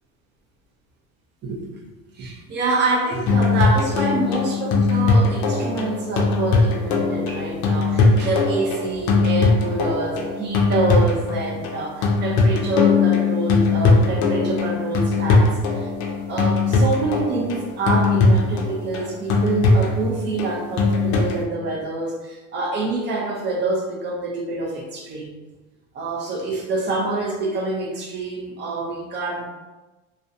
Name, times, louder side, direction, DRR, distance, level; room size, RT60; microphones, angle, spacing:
voice 1, 2.2-15.9 16.3-25.3 25.9-29.5, right 3 dB, 30° right, -1 dB, 0.4 m, -26 dB
sound 1, 3.3-21.4, left 4 dB, 55° left, 0.5 m, -20 dB
2.6 x 2.1 x 2.4 m, 1.2 s
cardioid pair, 155°, 36 cm